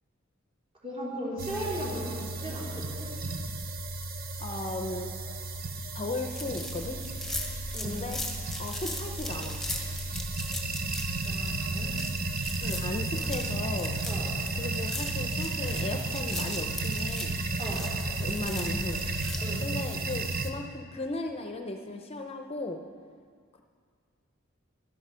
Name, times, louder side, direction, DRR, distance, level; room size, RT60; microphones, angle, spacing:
voice 1, 0.8-3.1 7.7-8.0 11.2-11.9 14.0-14.3 17.6-17.8 19.4-19.6, right 1 dB, 30° right, -6 dB, 3.8 m, -37 dB
sound 1, 1.4-20.5, right 2 dB, 50° right, 0.8 m, -33 dB
voice 2, 4.4-5.1 5.9-7.0 7.8-8.2 8.6-9.6 12.6-13.9 14.6-17.3 18.2-19.0 19.6-22.8, left 2 dB, 30° left, 4 dB, 0.6 m, -36 dB
sound 2, 6.3-19.4, left 1 dB, ahead, 1.5 m, -39 dB
12.0 x 11.0 x 5.5 m, 2.1 s
head